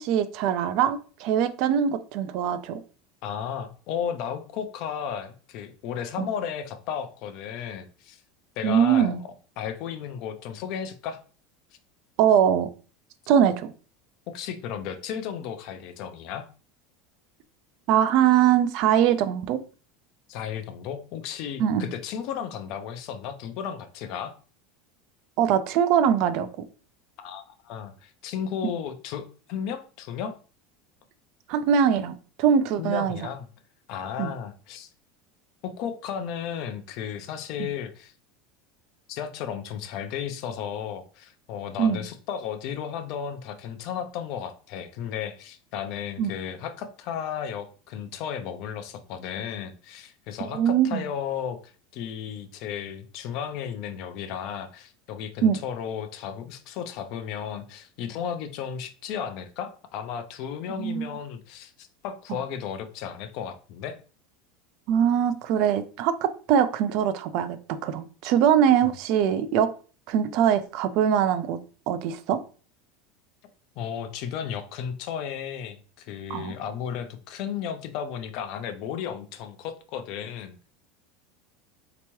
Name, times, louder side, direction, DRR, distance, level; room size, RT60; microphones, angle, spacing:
voice 1, 0.0-2.8 6.2-6.3 8.6-9.2 12.2-12.7 13.3-13.7 17.9-19.6 21.6-21.9 25.4-26.5 31.5-33.2 34.2-34.3 37.6-37.7 41.8-42.0 46.2-46.3 50.4-51.0 55.4-55.6 60.8-61.0 62.3-62.4 64.9-69.7 70.1-71.6 71.9-72.4 76.3-76.5, right 9 dB, 60° right, 11 dB, 0.4 m, -22 dB
voice 2, 3.2-8.2 8.6-11.2 14.3-16.5 20.3-24.3 27.2-30.3 32.8-33.5 33.9-34.9 35.6-38.1 39.1-64.0 73.8-80.7, left 8 dB, 60° left, 9 dB, 0.5 m, -34 dB
3.3 x 2.9 x 3.0 m, 0.38 s
supercardioid pair, 110°, 0 cm